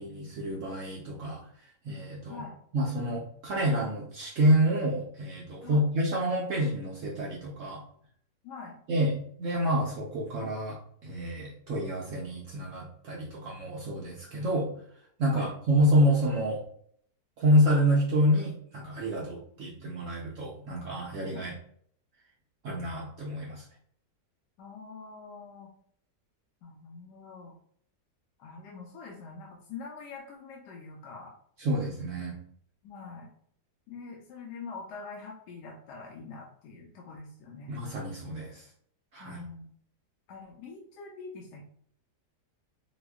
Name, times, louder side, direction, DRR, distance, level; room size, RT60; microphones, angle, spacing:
voice 1, 0.0-1.4 1.8-2.4 2.7-7.8 8.9-14.7 15.2-16.6 17.4-21.5 22.6-23.6 31.6-32.4 37.7-38.7 39.1-39.4, equal, 65° right, -3 dB, 0.8 m, -28 dB
voice 2, 8.4-8.8 15.3-15.5 21.3-21.5 24.6-25.7 26.6-27.6 28.4-31.3 32.8-33.3 33.9-37.8 39.2-39.7 40.3-41.6, left 4 dB, 85° left, -1 dB, 1.2 m, -44 dB
4.1 x 2.4 x 2.2 m, 0.63 s
omnidirectional pair, 1.8 m